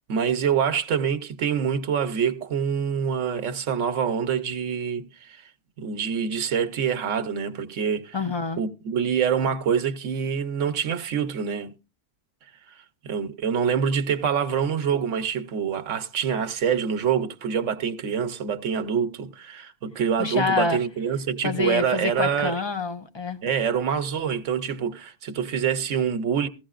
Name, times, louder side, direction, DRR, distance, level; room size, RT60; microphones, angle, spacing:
voice 1, 0.1-5.4 5.8-8.2 8.6-11.7 13.0-22.5 23.4-26.5, right 7 dB, 90° right, 1.2 m, -26 dB
voice 2, 8.1-8.6 20.2-20.8 21.4-23.4, left 4 dB, 25° left, 0.7 m, -26 dB
16.0 x 15.0 x 2.4 m
omnidirectional pair, 1.2 m